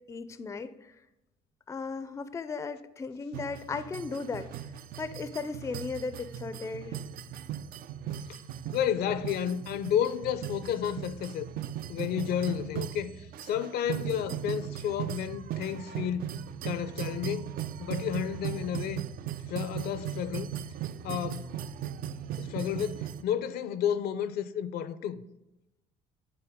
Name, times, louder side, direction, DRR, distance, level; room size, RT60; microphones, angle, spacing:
voice 1, 0.1-0.7 1.7-4.5 5.0-6.9, left 4 dB, 15° left, 0.4 m, -36 dB
sound 1, 3.3-23.2, right 10 dB, 60° right, 0.4 m, -38 dB
voice 2, 8.7-11.5 11.9-16.3 16.6-17.5 17.8-19.0 19.5-20.5 21.0-21.5 22.4-25.2, left 9 dB, 70° left, 0.5 m, -31 dB
9.9 x 4.3 x 3.5 m
cardioid pair, 110°, 17 cm